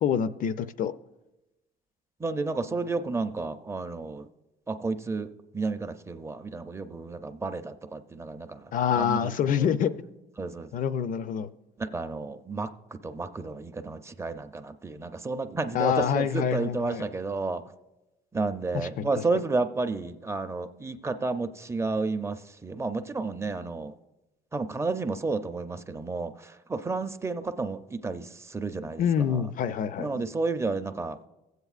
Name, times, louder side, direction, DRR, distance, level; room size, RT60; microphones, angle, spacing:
voice 1, 0.0-0.9 8.7-9.9 10.7-11.5 15.7-17.0 18.7-19.1 29.0-30.2, left 8 dB, 50° left, 13 dB, 0.5 m, -26 dB
voice 2, 2.2-4.3 4.7-9.7 10.4-10.7 11.8-12.7 13.0-17.6 18.3-23.9 24.5-29.4 30.0-31.2, right 3 dB, 15° right, 9 dB, 0.5 m, -31 dB
20.5 x 8.0 x 2.4 m, 1.0 s
cardioid pair, 110°, 17 cm